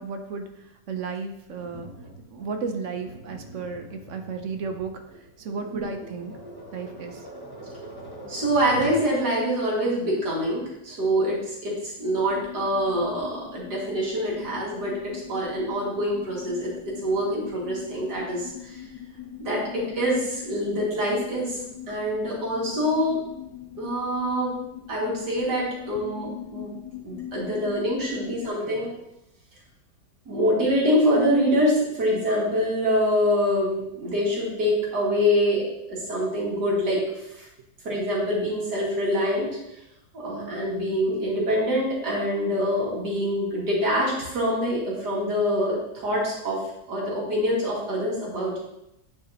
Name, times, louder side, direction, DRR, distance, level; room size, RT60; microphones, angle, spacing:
voice 1, 0.0-1.9 2.3-6.4 6.7-7.3, right 5 dB, 60° right, 5 dB, 0.9 m, -34 dB
Tap, 1.6-9.1, right 1 dB, 15° left, 1.0 m, -42 dB
voice 2, 8.3-18.8 19.4-21.6 21.9-23.2 23.8-24.5 24.9-26.7 27.0-28.9 30.3-35.6 35.9-37.5 37.8-39.5 40.1-46.6 46.9-48.6, equal, 90° right, -4 dB, 2.5 m, -25 dB
sound 1, 12.0-28.5, left 11 dB, 85° left, 1.4 m, -41 dB
9.3 x 4.9 x 2.8 m, 0.84 s
omnidirectional pair, 1.7 m